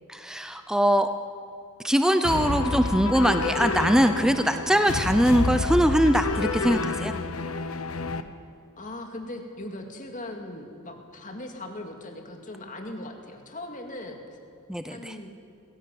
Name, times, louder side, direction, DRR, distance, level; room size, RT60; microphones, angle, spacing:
voice 1, 0.1-1.1 1.8-7.1 14.7-15.2, equal, 5° right, 8 dB, 0.6 m, -22 dB
sound 1, 2.2-8.2, left 3 dB, 75° left, 1.0 m, -29 dB
voice 2, 6.6-7.4 8.8-14.2 14.9-15.3, left 1 dB, 35° left, 3 dB, 2.3 m, -39 dB
22.0 x 16.5 x 7.7 m, 2.6 s
head